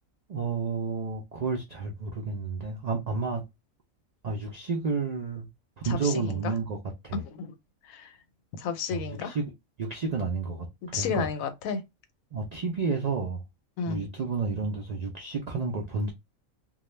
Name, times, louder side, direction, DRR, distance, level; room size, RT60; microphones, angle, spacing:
voice 1, 0.3-3.4 4.2-5.5 5.8-6.8 7.0-7.2 8.9-9.5 9.8-10.7 10.9-11.3 12.3-13.4 13.9-16.1, right 4 dB, 90° right, 0.3 m, -30 dB
voice 2, 5.8-6.5 7.1-7.5 7.8-8.1 8.5-9.4 10.8-11.8 13.8-14.0, left 6 dB, 85° left, 1.0 m, -32 dB
2.3 x 2.1 x 3.1 m
omnidirectional pair, 1.4 m